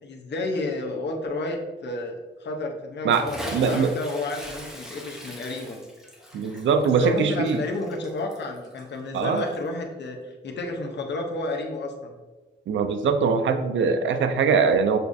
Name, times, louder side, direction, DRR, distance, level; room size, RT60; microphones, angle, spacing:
voice 1, 0.0-2.1 2.4-5.8 6.8-12.1, left 2 dB, 65° left, 2 dB, 0.7 m, -31 dB
voice 2, 3.0-3.9 6.3-7.6 9.1-9.5 12.7-15.0, right 5 dB, 85° right, 8 dB, 0.4 m, -22 dB
Bathtub (filling or washing) / Splash splatter, 3.1-9.7, equal, ahead, 0.8 m, -40 dB
6.6 x 2.4 x 2.6 m, 1.3 s
wide cardioid pair, 110°, 19 cm